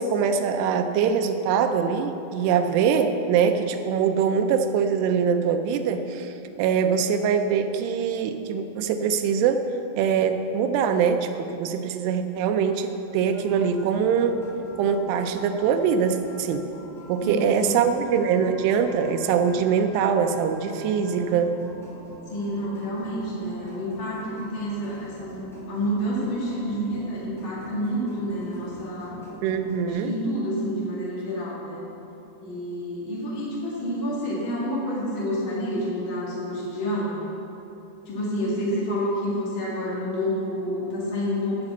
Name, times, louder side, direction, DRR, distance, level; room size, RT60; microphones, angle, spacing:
voice 1, 0.0-6.3 6.6-9.7 10.0-14.4 14.8-16.7 17.1-21.6 29.4-30.1, right 7 dB, 85° right, 7 dB, 2.8 m, -23 dB
sound 1, 13.3-29.9, equal, ahead, 1.4 m, -44 dB
voice 2, 17.2-17.9 22.3-29.2 29.9-31.8 32.4-37.2 38.1-41.6, equal, 45° left, -7 dB, 1.9 m, -29 dB
12.5 x 5.3 x 8.1 m, 3.0 s
omnidirectional pair, 4.7 m